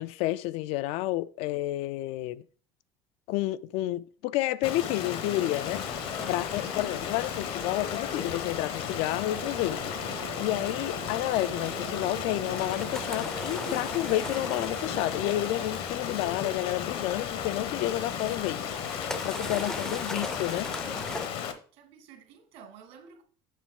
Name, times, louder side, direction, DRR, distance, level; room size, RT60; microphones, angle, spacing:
voice 1, 0.0-2.4 3.3-5.8 6.3-10.0 10.4-20.7, left 16 dB, 80° left, 0.4 m, -30 dB
Stream, 4.6-21.5, left 8 dB, 65° left, 0.9 m, -34 dB
sound 1, 5.6-21.3, left 1 dB, 5° left, 0.4 m, -42 dB
Wind instrument woodwind instrument, 9.2-15.9, right 11 dB, 55° right, 0.5 m, -44 dB
voice 2, 21.7-23.2, right 7 dB, 75° right, 1.5 m, -52 dB
7.3 x 5.5 x 3.6 m
cardioid pair, 150°, 10 cm